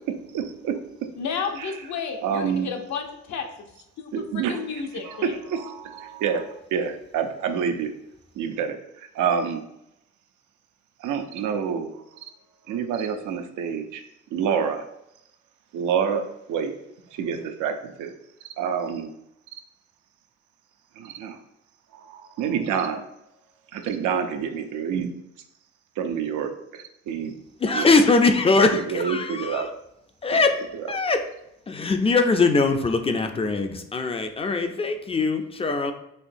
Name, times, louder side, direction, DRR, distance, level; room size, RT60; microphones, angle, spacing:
voice 1, 0.3-0.7 1.6-1.8 2.2-2.7 4.1-7.9 8.3-9.6 11.0-12.3 12.7-14.0 14.3-14.9 15.7-16.2 16.5-16.7 17.1-18.1 18.4-19.1 19.5-19.6 20.9-21.4 21.9-23.1 23.7-25.1 26.0-27.4 27.7-27.9 28.7-29.7 30.3-30.4 30.8-30.9, right 7 dB, 80° right, 6 dB, 0.5 m, -28 dB
voice 2, 1.2-3.4 4.0-5.3, left 6 dB, 65° left, 4 dB, 0.7 m, -32 dB
voice 3, 27.6-29.7 30.2-30.6 30.9-31.2 31.7-35.9, left 3 dB, 20° left, 6 dB, 0.4 m, -21 dB
4.4 x 2.7 x 2.6 m, 0.82 s
cardioid pair, 90°, 30 cm